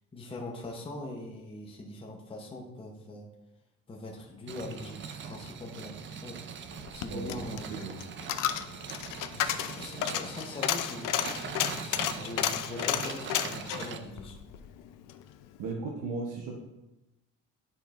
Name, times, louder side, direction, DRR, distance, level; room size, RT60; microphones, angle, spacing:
voice 1, 0.1-3.3 3.9-8.0 9.3-14.4, left 2 dB, 15° left, 0 dB, 0.7 m, -42 dB
sound 1, 4.5-14.0, right 6 dB, 40° right, 0.4 m, -42 dB
Coin (dropping), 6.8-15.2 15.6-15.7, left 11 dB, 85° left, 0.5 m, -32 dB
voice 2, 7.1-8.0 15.6-16.6, right 3 dB, 90° right, -1 dB, 0.9 m, -36 dB
10.0 x 4.5 x 2.4 m, 0.99 s
cardioid pair, 150°, 31 cm